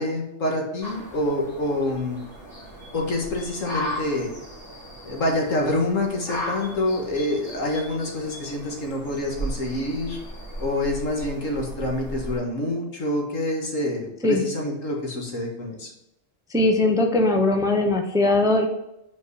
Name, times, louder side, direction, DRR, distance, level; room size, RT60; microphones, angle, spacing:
voice 1, 0.0-2.2 2.9-4.3 5.0-10.2 10.6-15.9, left 1 dB, 80° left, 1 dB, 2.1 m, -27 dB
sound 1, 0.8-12.4, equal, 45° left, 3.1 m, -36 dB
voice 2, 16.5-18.7, left 2 dB, 5° right, 4 dB, 0.7 m, -20 dB
5.6 x 4.6 x 6.3 m, 0.85 s
omnidirectional pair, 1.3 m